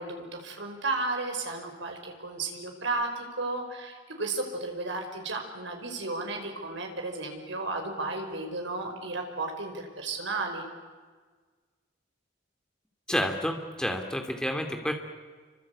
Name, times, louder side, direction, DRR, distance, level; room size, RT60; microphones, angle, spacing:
voice 1, 0.0-10.6, right 2 dB, 70° right, 3 dB, 5.3 m, -33 dB
voice 2, 13.1-14.9, equal, 5° left, 4 dB, 2.5 m, -29 dB
28.0 x 24.5 x 8.6 m, 1.5 s
head